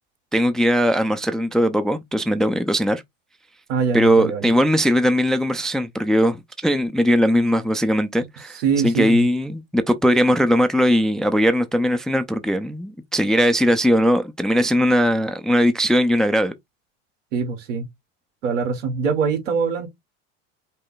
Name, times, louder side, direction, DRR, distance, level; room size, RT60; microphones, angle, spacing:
voice 1, 0.3-3.0 3.9-8.6 8.8-16.5, equal, ahead, 0.5 m, -19 dB
voice 2, 3.7-4.5 8.2-8.3 8.5-9.3 17.3-17.9 18.4-19.9, right 5 dB, 80° right, 2.1 m, -23 dB
5.4 x 2.2 x 3.9 m
hypercardioid pair, 95°, 37 cm